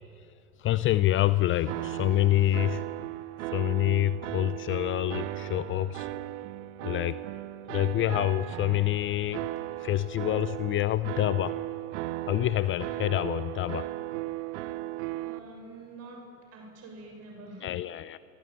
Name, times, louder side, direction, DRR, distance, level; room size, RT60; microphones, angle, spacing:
voice 1, 0.6-2.8 3.5-6.1 6.8-7.2 7.7-9.5 9.8-11.6 12.3-13.9 17.6-18.2, left 14 dB, 30° left, 15 dB, 0.7 m, -27 dB
sound 1, 1.7-15.4, right 16 dB, 60° right, 1.1 m, -36 dB
voice 2, 15.1-17.8, right 2 dB, 35° right, 2 dB, 6.9 m, -46 dB
28.0 x 23.5 x 9.0 m, 2.7 s
hypercardioid pair, 100°, 42 cm